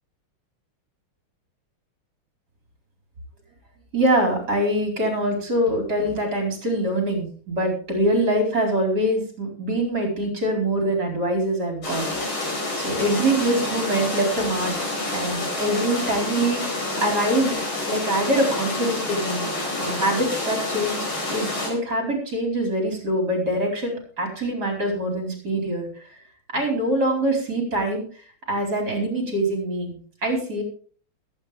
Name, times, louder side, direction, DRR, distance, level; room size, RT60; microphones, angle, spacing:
voice 1, 3.9-12.1 12.7-14.8 15.1-17.6 17.9-19.5 19.8-25.9 26.5-28.0 28.5-30.6, right 1 dB, 50° right, 1 dB, 5.0 m, -24 dB
sound 1, 11.8-21.7, left 2 dB, 70° left, 4.9 m, -28 dB
21.0 x 9.0 x 3.5 m, 0.43 s
omnidirectional pair, 2.3 m